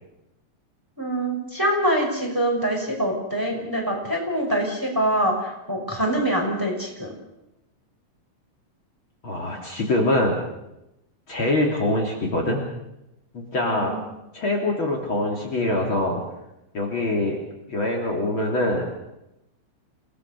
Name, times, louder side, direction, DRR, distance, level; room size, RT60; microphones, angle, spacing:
voice 1, 1.0-7.1 13.7-14.1, right 1 dB, 5° right, -1 dB, 5.8 m, -25 dB
voice 2, 9.2-10.4 11.3-12.7 13.3-14.0 14.3-16.2 16.7-17.4 17.7-19.0, left 1 dB, 45° left, -1 dB, 3.6 m, -24 dB
29.0 x 18.5 x 6.8 m, 0.90 s
omnidirectional pair, 3.3 m